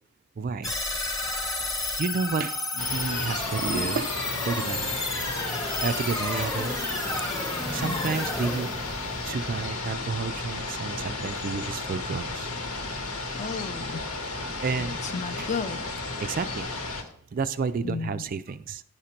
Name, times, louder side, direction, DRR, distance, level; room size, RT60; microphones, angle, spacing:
voice 1, 0.4-0.8 2.0-4.1 4.4-5.2 5.8-6.7 7.1-8.7 9.2-12.5 14.6-15.0 15.4-15.5 16.2-16.7 17.3-18.8, right 5 dB, 40° right, 12 dB, 0.3 m, -31 dB
sound 1, 0.6-9.9, left 2 dB, 15° left, 1.0 m, -31 dB
sound 2, 2.8-17.0, left 3 dB, 80° left, 1.2 m, -33 dB
voice 2, 13.4-14.0 14.9-15.8 17.8-18.2, left 5 dB, 30° left, 12 dB, 0.4 m, -33 dB
10.5 x 5.1 x 4.3 m, 0.67 s
head